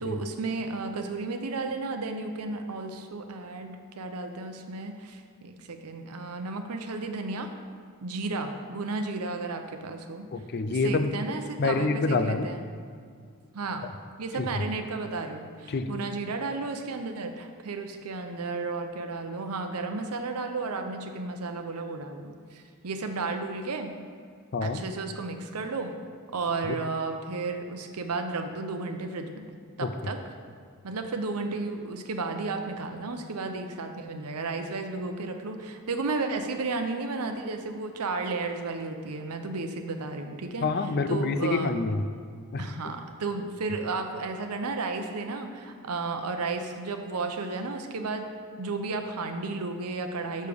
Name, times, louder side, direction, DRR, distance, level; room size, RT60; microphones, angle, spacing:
voice 1, 0.0-7.5 8.0-10.3 10.7-12.6 13.5-13.9 14.2-23.9 24.6-26.0 26.3-29.5 29.8-30.2 30.8-40.7 41.1-41.7 42.6-48.3 48.6-50.5, right 3 dB, 85° right, 6 dB, 0.7 m, -33 dB
voice 2, 10.3-11.1 11.6-12.5 14.4-14.6 15.7-16.0 24.5-24.9 26.6-26.8 29.8-29.9 40.6-42.1 42.5-42.7, left 3 dB, 45° left, 9 dB, 0.4 m, -27 dB
6.8 x 6.4 x 5.2 m, 2.1 s
head